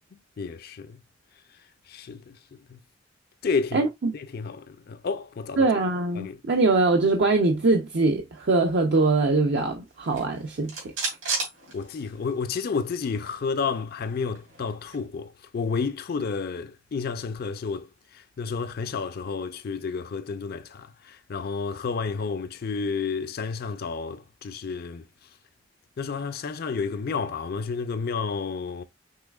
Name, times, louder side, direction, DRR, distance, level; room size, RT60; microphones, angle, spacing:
voice 1, 0.1-1.0 1.9-2.4 2.7-2.8 3.4-3.9 4.1-5.7 6.1-6.4 11.7-17.9 18.1-25.0 26.0-28.8, left 5 dB, 50° left, 0.4 m, -31 dB
voice 2, 3.7-4.1 5.6-10.7, right 3 dB, 60° right, 0.5 m, -22 dB
sound 1, 10.0-12.4 12.8-12.9 13.1-15.1, right 3 dB, 85° right, 2.6 m, -34 dB
5.5 x 3.2 x 2.3 m
head